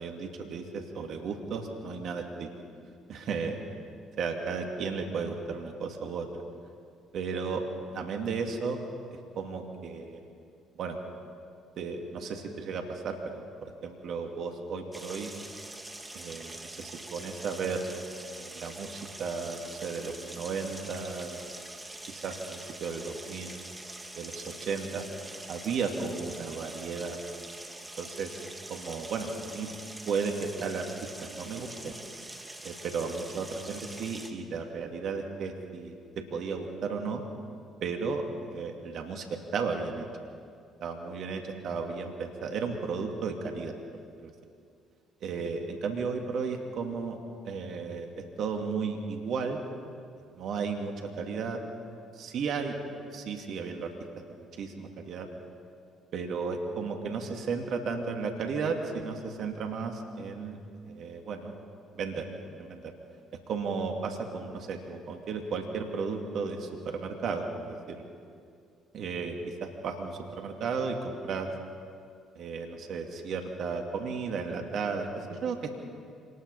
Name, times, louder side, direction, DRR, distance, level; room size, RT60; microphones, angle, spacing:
voice 1, 0.0-2.5 3.1-3.6 4.2-6.3 7.1-7.6 7.9-8.8 9.4-10.2 10.8-11.0 11.8-15.3 16.1-17.8 18.3-21.5 22.1-22.3 22.8-23.6 24.2-25.0 25.5-27.2 28.0-28.4 28.7-29.7 30.1-30.9 31.3-31.9 32.6-36.0 36.3-37.2 37.8-38.2 38.5-40.1 40.8-43.7 44.2-44.3 45.2-47.2 47.4-49.6 50.3-51.6 52.1-52.8 53.1-53.9 54.6-55.3 56.1-60.6 60.9-61.5 61.9-62.3 62.6-62.9 63.5-68.1 68.9-71.5 72.4-75.7, right 5 dB, 60° right, 3 dB, 2.2 m, -34 dB
sound 1, 14.9-34.3, right 2 dB, 15° right, 2.9 m, -44 dB
26.5 x 20.0 x 5.5 m, 2.3 s
hypercardioid pair, 50°, 0 cm